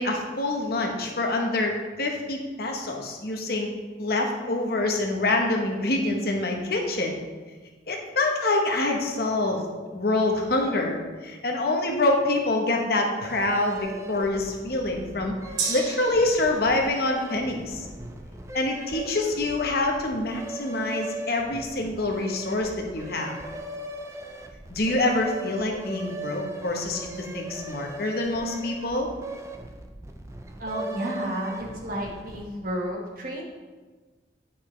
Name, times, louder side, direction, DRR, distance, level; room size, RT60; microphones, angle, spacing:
voice 1, 0.0-3.7 4.0-7.2 7.9-15.3 15.7-17.9 18.5-23.4 24.7-29.1, left 2 dB, 60° left, 2 dB, 1.0 m, -26 dB
sound 1, 13.2-32.6, right 2 dB, 15° right, 0.5 m, -39 dB
Gong, 15.6-23.3 23.7-23.8, right 4 dB, 90° right, 1.2 m, -39 dB
voice 2, 30.6-33.4, right 1 dB, 50° right, -1 dB, 1.5 m, -32 dB
8.9 x 5.7 x 3.2 m, 1.3 s
head